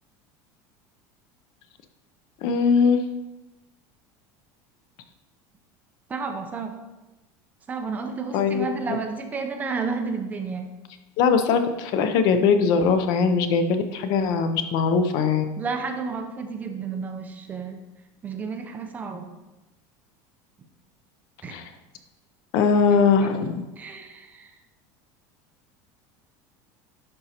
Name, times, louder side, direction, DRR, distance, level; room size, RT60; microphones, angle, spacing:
voice 1, 2.4-3.0 8.3-9.0 11.2-15.4 21.5-21.6 22.5-23.7, left 5 dB, 45° left, 8 dB, 0.6 m, -21 dB
voice 2, 6.1-6.8 7.7-10.7 15.6-17.8 18.2-19.3 21.4-21.6 23.8-24.6, right 4 dB, 15° right, 5 dB, 0.5 m, -31 dB
10.5 x 5.2 x 2.9 m, 1.1 s
cardioid pair, 170°, 10 cm